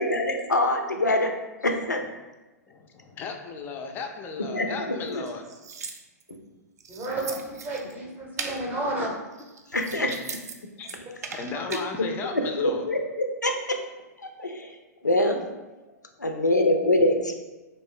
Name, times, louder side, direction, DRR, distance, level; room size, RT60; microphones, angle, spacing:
voice 1, 0.0-1.3 1.6-2.0 4.4-5.2 6.3-6.4 9.7-10.1 11.7-13.8 14.2-15.4 16.2-17.3, left 1 dB, 85° left, 4 dB, 0.4 m, -25 dB
voice 2, 2.7-5.5 10.0-10.1 10.8-12.9, left 4 dB, 20° left, 5 dB, 0.3 m, -36 dB
sound 1, 5.1-6.4 6.8-7.9 8.4-8.6 9.3-10.5 10.8-11.9, right 5 dB, 65° right, 0.3 m, -38 dB
voice 3, 6.9-9.1, right 1 dB, 20° right, -2 dB, 0.6 m, -31 dB
2.6 x 2.5 x 3.6 m, 1.1 s
figure-of-eight pair, 105°, 9 cm